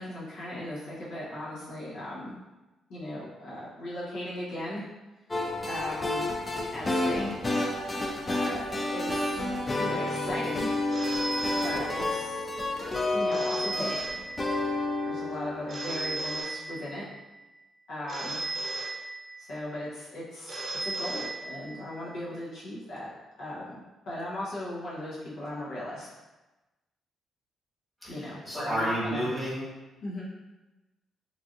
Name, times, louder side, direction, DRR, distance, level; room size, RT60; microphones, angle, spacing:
voice 1, 0.0-2.4 2.9-4.8 5.7-6.3 6.7-7.3 8.3-9.4 9.8-10.7 11.6-12.5 13.1-14.1 15.0-17.1 17.9-18.4 19.4-20.5 20.8-23.1 23.4-26.1 28.1-29.3 30.0-30.3, left 1 dB, 75° left, -8 dB, 1.0 m, -37 dB
sound 1, 5.3-16.4, left 2 dB, 25° left, 0.4 m, -30 dB
Telephone, 10.9-12.4 13.3-14.8 15.7-17.2 18.1-19.6 20.5-22.0, right 2 dB, 45° right, 0.6 m, -36 dB
voice 2, 28.0-29.7, equal, ahead, -8 dB, 1.4 m, -31 dB
3.3 x 2.5 x 2.5 m, 1.1 s
cardioid pair, 90°, 0 cm